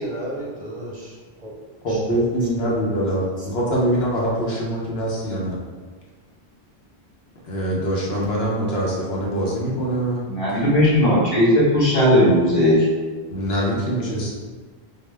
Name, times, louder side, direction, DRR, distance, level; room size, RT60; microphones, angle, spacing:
voice 1, 0.0-1.5 1.9-2.2 2.6-2.7 3.4-3.5, right 1 dB, 45° right, -4 dB, 0.7 m, -33 dB
voice 2, 1.8-5.6 7.4-10.2 13.3-14.3, right 1 dB, 75° left, -4 dB, 1.1 m, -23 dB
voice 3, 10.3-12.9, left 1 dB, 35° left, -9 dB, 1.4 m, -17 dB
4.7 x 2.1 x 3.3 m, 1.5 s
omnidirectional pair, 1.1 m